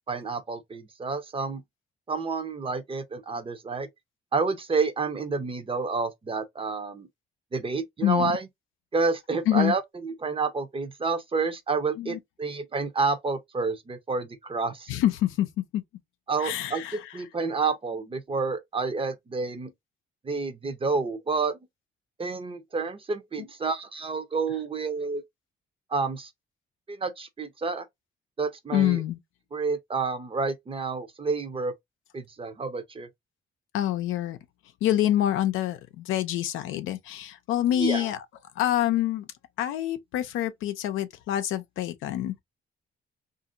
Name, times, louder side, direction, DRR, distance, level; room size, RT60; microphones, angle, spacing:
voice 1, 0.1-1.6 2.1-3.9 4.3-7.1 7.5-8.5 8.9-14.9 16.3-19.7 20.2-21.6 22.2-25.2 25.9-26.3 26.9-27.9 28.4-29.0 29.5-31.7 32.1-33.1 37.8-38.1, right 4 dB, 25° right, 0.6 m, -29 dB
voice 2, 8.0-8.3 9.5-9.7 12.0-12.2 14.9-15.5 15.7-15.8 16.4-17.0 28.7-29.2 33.7-34.4 34.8-38.2 38.6-39.3 39.6-42.4, left 12 dB, 90° left, 0.5 m, -26 dB
2.8 x 2.6 x 2.5 m
cardioid pair, 90°, 20 cm